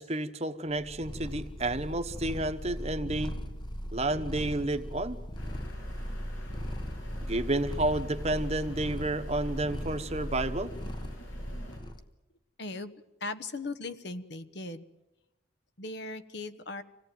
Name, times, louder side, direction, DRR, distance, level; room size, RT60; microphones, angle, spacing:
voice 1, 0.0-3.4 3.9-5.2 7.2-10.7, right 2 dB, 30° right, 9 dB, 1.1 m, -31 dB
Purr, 0.7-12.0, equal, 20° left, 1.0 m, -38 dB
sound 1, 5.4-11.8, equal, 80° left, 7.0 m, -51 dB
voice 2, 12.6-12.9 13.2-14.9 15.8-16.8, left 2 dB, 55° left, 11 dB, 1.1 m, -38 dB
25.5 x 17.5 x 9.3 m, 1.0 s
head